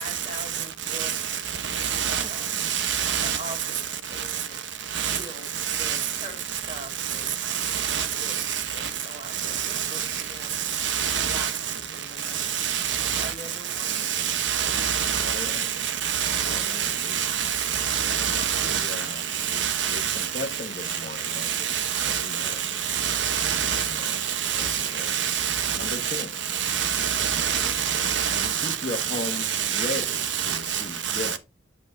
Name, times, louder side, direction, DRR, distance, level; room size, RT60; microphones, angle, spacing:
voice 1, 0.0-1.5 2.1-2.6 3.2-4.7 5.0-7.4 7.9-10.6 11.3-12.5 13.1-14.2 15.7-15.8, right 1 dB, 40° right, 2.3 m, -42 dB
voice 2, 1.6-2.2 2.5-3.4 4.9-5.2 5.7-6.0 7.5-8.6 8.8-8.9 9.5-10.1 10.7-11.5 12.3-13.3 13.8-19.1 19.3-20.3 20.9-21.0 21.3-26.2 26.5-31.4, right 8 dB, 70° right, 1.0 m, -26 dB
voice 3, 15.2-15.7 16.4-17.2 18.6-21.7 22.0-22.6 23.7-24.2 24.5-25.2 25.7-26.4 28.3-31.4, left 2 dB, 40° left, 1.0 m, -37 dB
7.6 x 6.5 x 2.6 m
head